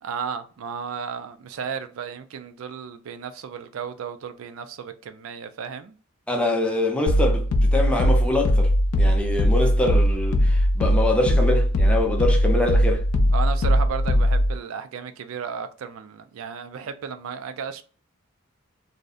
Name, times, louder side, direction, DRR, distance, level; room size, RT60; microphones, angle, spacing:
voice 1, 0.0-5.9 13.3-17.8, right 6 dB, 70° right, 0.4 m, -34 dB
voice 2, 6.3-8.7 9.0-13.0, left 1 dB, 5° left, 0.5 m, -25 dB
sound 1, 7.1-14.6, equal, 70° left, 0.4 m, -20 dB
2.6 x 2.0 x 2.3 m
head